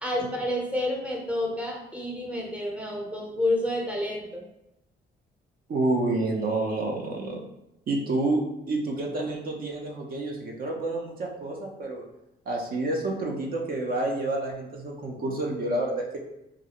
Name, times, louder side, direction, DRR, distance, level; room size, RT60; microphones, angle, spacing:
voice 1, 0.0-4.4, left 1 dB, 5° right, -2 dB, 0.6 m, -29 dB
voice 2, 5.7-7.4 7.9-12.1 12.5-16.2, right 2 dB, 45° right, 0 dB, 0.5 m, -29 dB
2.4 x 2.0 x 2.8 m, 0.86 s
cardioid pair, 90°, 20 cm